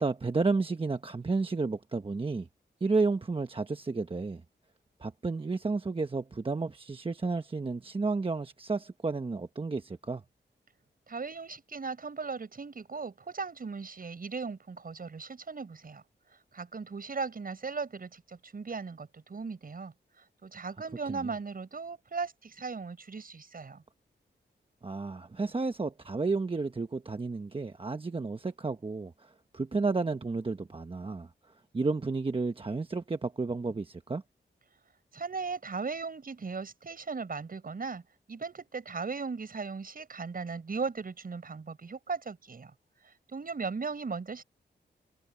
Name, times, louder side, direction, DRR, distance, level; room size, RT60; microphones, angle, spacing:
voice 1, 0.0-2.5 2.8-4.4 5.0-10.2 21.1-21.3 24.8-31.3 31.7-34.2, right 3 dB, 30° right, 1.1 m, -32 dB
voice 2, 11.1-16.0 16.5-23.8 35.1-38.0 38.3-42.7 43.0-44.4, right 4 dB, 50° right, 7.4 m, -37 dB
wide cardioid pair, 100°, 19 cm